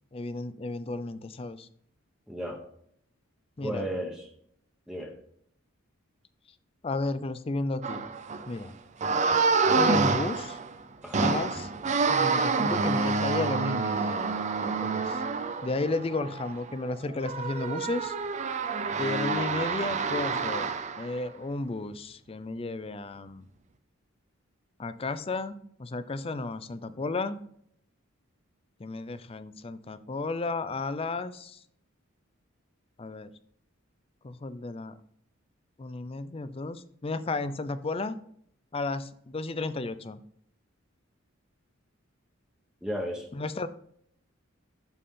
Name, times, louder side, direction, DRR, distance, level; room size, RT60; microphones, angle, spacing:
voice 1, 0.1-1.7 3.6-3.9 6.8-8.0 8.5-8.7 9.7-10.6 11.2-14.2 14.8-15.2 15.6-18.2 19.0-20.7 21.0-23.5 24.8-27.4 28.8-31.6 33.0-33.3 34.2-34.9 35.8-38.1 38.7-40.2 43.3-43.7, left 3 dB, 30° left, 13 dB, 0.5 m, -33 dB
voice 2, 2.3-2.6 3.6-4.3 4.9-5.1 11.0-11.3 42.8-43.3, equal, 5° right, 1 dB, 1.1 m, -34 dB
sound 1, 7.8-8.5 9.0-10.7 11.1-21.1, right 4 dB, 35° right, 0.5 m, -28 dB
12.5 x 4.3 x 3.7 m, 0.66 s
head